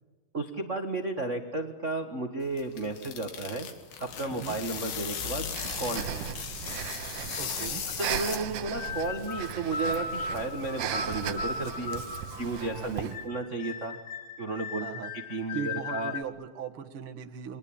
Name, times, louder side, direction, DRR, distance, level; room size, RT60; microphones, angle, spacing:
voice 1, 0.3-3.7 4.0-5.4 5.8-6.2 8.0-12.0 12.4-14.0 14.4-14.8 15.3-16.1, right 3 dB, 85° right, 4 dB, 0.6 m, -33 dB
sound 1, 2.4-8.8, left 7 dB, 80° left, 4.0 m, -37 dB
Breathing, 5.5-13.2, right 10 dB, 70° right, 2.5 m, -37 dB
voice 2, 7.4-7.8 12.7-13.2 14.8-15.1 15.5-17.6, right 7 dB, 50° right, 3 dB, 1.8 m, -39 dB
sound 2, 8.7-16.2, left 4 dB, 50° left, 1.6 m, -37 dB
29.5 x 23.0 x 8.8 m, 1.3 s
omnidirectional pair, 4.2 m